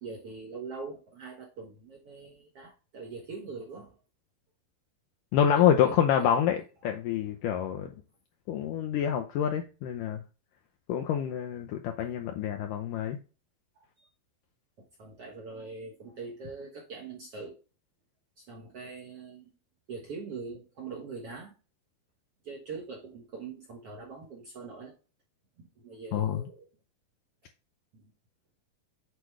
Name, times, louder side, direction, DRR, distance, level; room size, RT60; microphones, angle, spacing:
voice 1, 0.0-4.0 5.5-6.4 7.7-7.9 12.0-12.2 14.0-14.1 15.0-17.6 18.4-19.5 19.9-21.6 22.4-24.9 25.8-26.7 27.9-28.1, right 4 dB, 60° right, 1.6 m, -43 dB
voice 2, 5.3-6.6 6.8-7.9 8.5-10.2 10.9-13.2 26.1-26.5, left 9 dB, 80° left, 1.9 m, -27 dB
8.2 x 4.7 x 3.2 m
omnidirectional pair, 4.5 m